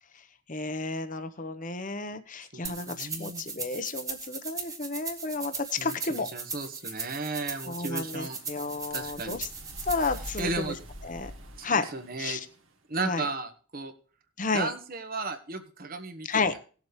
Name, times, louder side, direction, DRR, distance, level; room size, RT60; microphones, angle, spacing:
voice 1, 0.5-6.3 7.7-9.5 9.9-10.7 11.1-11.3 11.6-11.8 12.2-12.4 13.0-13.3 14.4-14.7 16.3-16.5, left 3 dB, 35° left, 9 dB, 1.0 m, -31 dB
voice 2, 2.5-3.4 5.8-8.4 8.9-9.4 10.4-10.8 11.6-12.4 12.9-13.9 14.5-16.5, right 3 dB, 45° right, 8 dB, 1.4 m, -35 dB
sound 1, 2.6-10.4, right 4 dB, 15° right, 1.5 m, -38 dB
sound 2, 7.7-12.7, equal, 65° right, 2.0 m, -45 dB
18.5 x 7.4 x 3.2 m, 0.39 s
head